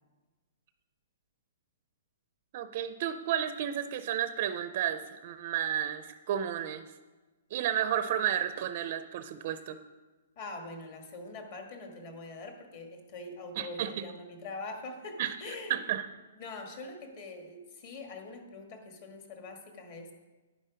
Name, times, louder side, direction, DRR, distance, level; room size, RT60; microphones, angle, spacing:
voice 1, 2.5-6.8 7.5-9.8 13.6-14.1 15.2-15.4 15.7-16.1, right 10 dB, 35° right, 11 dB, 0.5 m, -32 dB
voice 2, 10.4-15.8 16.4-20.1, left 2 dB, 35° left, 4 dB, 1.8 m, -43 dB
10.5 x 9.9 x 5.1 m, 1.2 s
hypercardioid pair, 170°, 0 cm